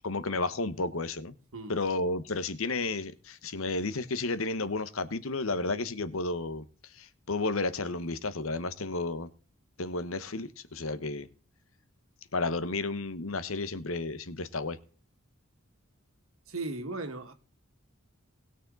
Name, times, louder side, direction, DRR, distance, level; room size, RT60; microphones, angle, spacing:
voice 1, 0.0-1.3 1.7-6.6 6.9-9.3 9.8-11.3 12.3-14.8, left 3 dB, 70° left, 1.1 m, -32 dB
voice 2, 16.5-17.3, right 3 dB, 75° right, 1.9 m, -36 dB
19.5 x 6.6 x 4.0 m
head